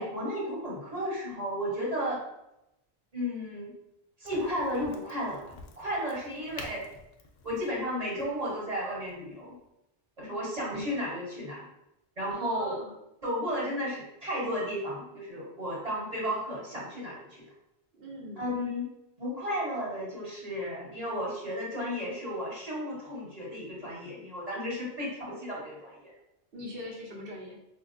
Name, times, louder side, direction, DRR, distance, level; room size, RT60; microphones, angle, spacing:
voice 1, 0.0-2.2 3.1-3.7 4.2-6.8 7.4-9.6 10.2-11.6 12.2-12.8 13.2-17.4 18.4-18.9 19.2-26.1, equal, 40° right, -6 dB, 1.2 m, -33 dB
Crack, 4.2-9.7, left 3 dB, 60° left, 0.6 m, -50 dB
voice 2, 12.3-12.9 17.9-18.5 26.5-27.6, equal, 65° right, -2 dB, 1.0 m, -41 dB
4.2 x 2.4 x 2.5 m, 0.85 s
omnidirectional pair, 1.0 m